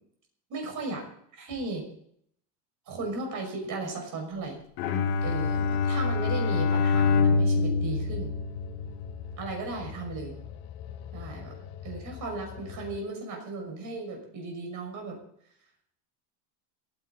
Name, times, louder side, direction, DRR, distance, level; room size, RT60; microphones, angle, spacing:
voice 1, 0.5-1.0 1.4-1.8 2.9-4.6 5.2-8.3 9.4-10.3 11.1-11.5 11.8-15.2, right 3 dB, 35° right, 2 dB, 6.1 m, -36 dB
Bowed string instrument, 4.8-9.2, left 4 dB, 65° left, 2.8 m, -25 dB
sound 1, 5.2-13.0, left 9 dB, 50° left, 1.5 m, -42 dB
28.5 x 10.5 x 4.0 m, 0.68 s
supercardioid pair, 155°, 50 cm